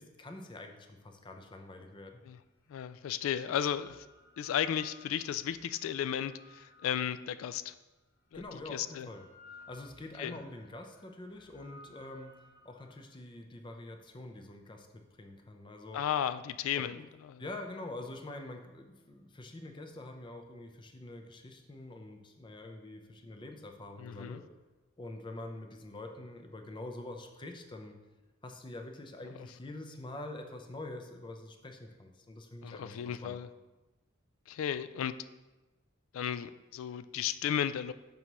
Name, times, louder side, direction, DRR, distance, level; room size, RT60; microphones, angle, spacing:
voice 1, 0.0-2.2 8.3-9.2 9.5-12.4 12.6-16.0 16.8-16.9 17.4-24.4 25.0-28.0 28.4-33.4, left 2 dB, 25° left, 4 dB, 0.5 m, -45 dB
sound 1, 2.3-2.4 3.3-7.6 8.3-13.0, left 3 dB, 45° left, 1.1 m, -58 dB
voice 2, 2.7-4.1 4.4-7.7 8.3-9.1 10.2-10.4 15.9-17.4 24.0-24.4 32.6-33.5 34.5-35.1 36.1-37.9, left 9 dB, 85° left, 14 dB, 0.3 m, -34 dB
6.3 x 5.2 x 3.0 m, 1.1 s
head